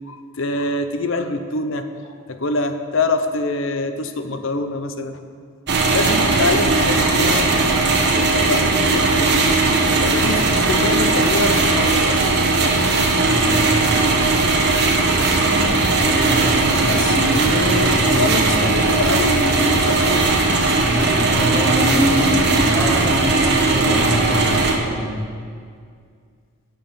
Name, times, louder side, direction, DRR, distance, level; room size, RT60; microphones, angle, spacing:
voice 1, 0.0-1.9 2.3-5.2 5.9-7.9 8.2-9.6 10.0-12.2 16.9-20.2, left 2 dB, 60° left, 8 dB, 0.6 m, -25 dB
sound 1, 5.7-24.8, right 3 dB, 50° right, 1.0 m, -18 dB
voice 2, 13.3-14.1 15.4-18.6 20.8-25.2, equal, 10° left, -3 dB, 1.0 m, -25 dB
8.7 x 5.9 x 7.0 m, 2.1 s
head